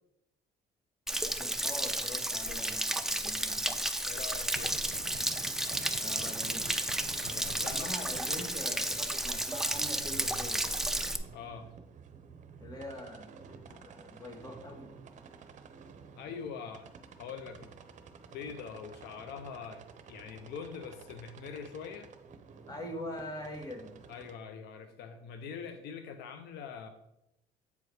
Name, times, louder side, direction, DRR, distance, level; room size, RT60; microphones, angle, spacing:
Stream / Splash splatter / Trickle dribble, 1.1-11.2, right 1 dB, ahead, 0.5 m, -32 dB
voice 1, 1.2-3.7 6.0-6.7 7.7-10.7 12.6-14.9 22.7-23.9, left 1 dB, 20° left, 2 dB, 2.0 m, -43 dB
voice 2, 4.1-4.8 7.2-7.9 8.3-8.5 11.3-11.8 16.2-16.9 17.2-17.7 18.3-22.1 24.1-26.9, left 6 dB, 80° left, 8 dB, 0.7 m, -43 dB
sound 1, 4.5-24.3, right 5 dB, 45° right, 0.8 m, -51 dB
8.2 x 4.9 x 4.8 m, 0.83 s
cardioid pair, 110°, 17 cm